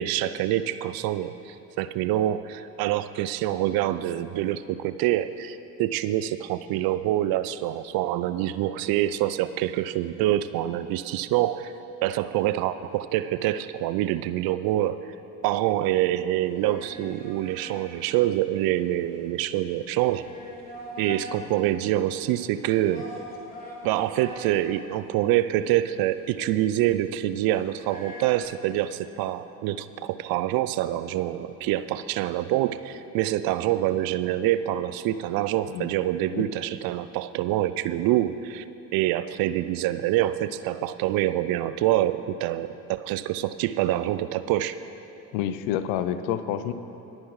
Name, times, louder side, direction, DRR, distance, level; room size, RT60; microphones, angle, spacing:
voice 1, 0.0-11.7 12.0-15.1 15.4-20.3 21.0-23.1 23.8-38.6 38.9-44.8, right 13 dB, 55° right, 14 dB, 0.5 m, -26 dB
sound 1, 16.4-28.4, equal, 20° left, 3.2 m, -44 dB
voice 2, 45.3-46.7, left 10 dB, 65° left, 11 dB, 0.8 m, -28 dB
19.5 x 9.6 x 3.2 m, 2.8 s
hypercardioid pair, 65°, 44 cm